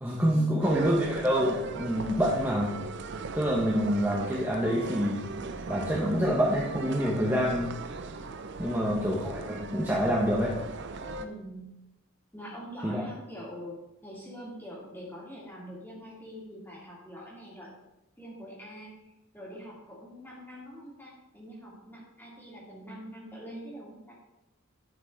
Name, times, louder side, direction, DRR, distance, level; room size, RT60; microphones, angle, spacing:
voice 1, 0.0-2.8 3.3-5.2 5.7-7.7 8.6-10.5 12.8-13.0, equal, 10° right, -5 dB, 0.9 m, -27 dB
sound 1, 0.6-11.3, right 4 dB, 50° right, 0.5 m, -38 dB
voice 2, 11.2-11.7 12.3-13.8 14.0-17.7 18.2-18.9 19.3-24.1, equal, 10° left, -5 dB, 2.4 m, -44 dB
10.5 x 6.0 x 3.3 m, 0.93 s
head